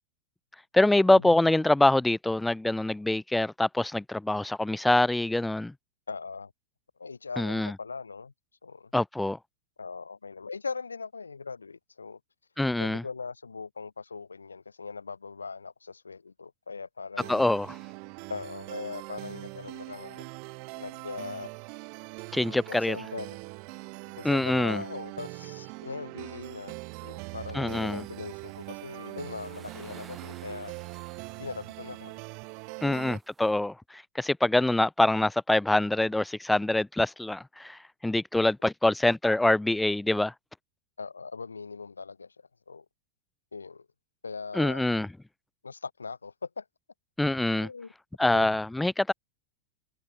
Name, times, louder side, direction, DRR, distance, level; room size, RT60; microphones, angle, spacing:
voice 1, 0.7-5.7 7.4-7.7 8.9-9.4 12.6-13.0 17.3-17.8 22.3-23.0 24.2-24.8 27.5-28.0 32.8-40.3 44.5-45.1 47.2-47.7 48.2-49.1, left 2 dB, 5° left, 0.9 m, -25 dB
voice 2, 6.1-6.5 7.0-8.3 8.6-8.9 9.8-12.2 12.8-17.5 18.3-20.3 20.8-21.5 22.7-23.4 24.1-26.7 27.0-30.7 31.4-32.2 32.8-33.0 41.0-42.3 42.7-42.9 43.5-43.9 44.2-44.8 45.6-46.6 47.6-47.9 48.2-48.6, left 4 dB, 75° left, 3.9 m, -40 dB
sound 1, 17.2-33.2, right 37 dB, 45° right, 5.3 m, -42 dB
sound 2, 27.7-33.5, right 5 dB, 15° right, 6.6 m, -55 dB
figure-of-eight pair, 90°, 0 cm